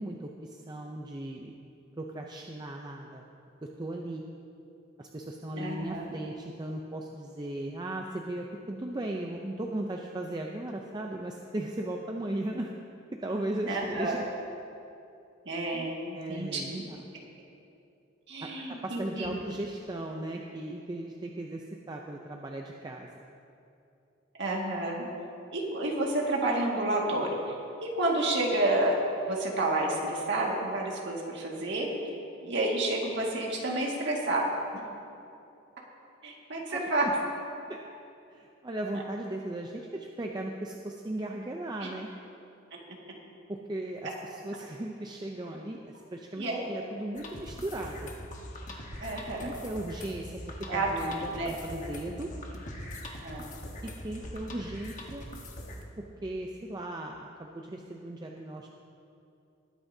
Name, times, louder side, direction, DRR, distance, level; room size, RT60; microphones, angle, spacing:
voice 1, 0.0-1.6 2.0-3.2 3.6-4.2 5.0-12.7 13.1-14.3 15.7-17.0 18.4-23.1 36.7-37.1 37.7-37.8 38.3-42.1 43.5-48.1 49.4-52.3 53.8-55.3 56.0-58.7, right 1 dB, 20° right, 1 dB, 0.5 m, -37 dB
voice 2, 5.6-6.1 13.7-14.2 15.5-16.6 18.3-19.4 24.4-25.1 25.5-29.0 29.3-31.9 32.4-34.5 34.7-34.8 36.2-37.1 41.8-41.9 46.4-46.7 49.0-49.5 50.7-51.5 53.2-53.5, right 2 dB, 60° right, -2 dB, 1.9 m, -30 dB
sound 1, 47.2-55.8, left 1 dB, 40° left, 1.2 m, -42 dB
20.0 x 9.5 x 2.7 m, 2.7 s
head